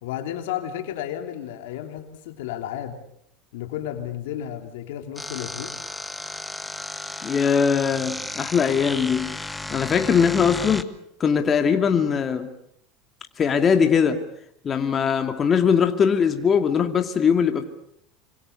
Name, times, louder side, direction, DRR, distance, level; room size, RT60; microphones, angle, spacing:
voice 1, 0.0-3.0 3.5-5.7, left 11 dB, 75° left, 6 dB, 3.1 m, -32 dB
sound 1, 5.2-10.8, left 2 dB, 10° left, 1.6 m, -34 dB
voice 2, 7.2-9.3 9.7-10.9 11.2-12.5 13.4-14.2 14.6-17.6, left 6 dB, 35° left, 6 dB, 2.4 m, -21 dB
26.0 x 26.0 x 6.8 m, 0.73 s
hypercardioid pair, 90°, 0 cm